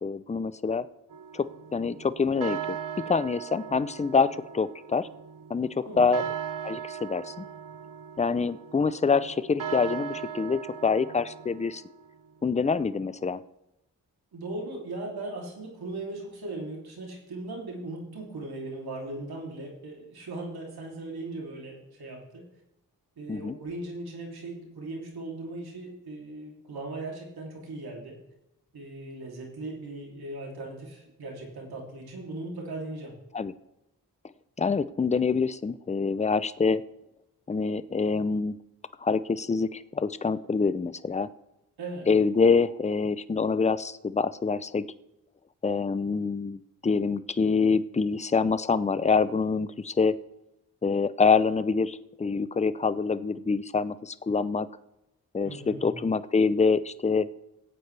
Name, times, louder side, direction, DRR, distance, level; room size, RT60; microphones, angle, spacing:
voice 1, 0.0-0.9 1.3-2.8 3.1-5.1 5.5-6.2 6.6-7.5 8.2-11.8 12.4-13.4 23.3-23.6 33.3-33.5 34.6-36.8 37.5-38.6 39.0-41.3 42.1-44.8 45.6-50.2 50.8-54.7 55.3-57.3, left 4 dB, 20° left, 15 dB, 0.5 m, -26 dB
sound 1, 1.1-12.3, right 9 dB, 60° right, 0.8 m, -39 dB
voice 2, 5.8-6.1 14.3-22.4 23.2-28.2 28.7-33.1 41.8-42.1 55.4-56.0, right 2 dB, 75° right, -1 dB, 3.0 m, -38 dB
17.5 x 8.4 x 3.3 m, 0.87 s
cardioid pair, 50°, 37 cm